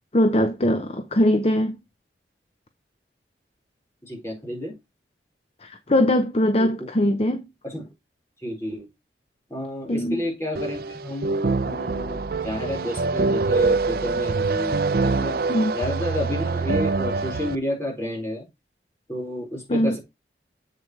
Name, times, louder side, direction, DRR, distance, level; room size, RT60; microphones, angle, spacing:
voice 1, 0.0-1.8 5.6-7.5 9.9-10.2 15.5-15.7 19.7-20.0, left 1 dB, 35° left, 0.7 m, -21 dB
voice 2, 4.0-4.8 6.6-6.7 7.6-7.9 8.4-8.9 9.5-15.4 15.7-18.5 19.1-20.0, left 1 dB, 15° left, 4.7 m, -30 dB
sound 1, 10.5-17.5, right 4 dB, 55° right, 0.4 m, -24 dB
7.9 x 7.2 x 3.2 m
head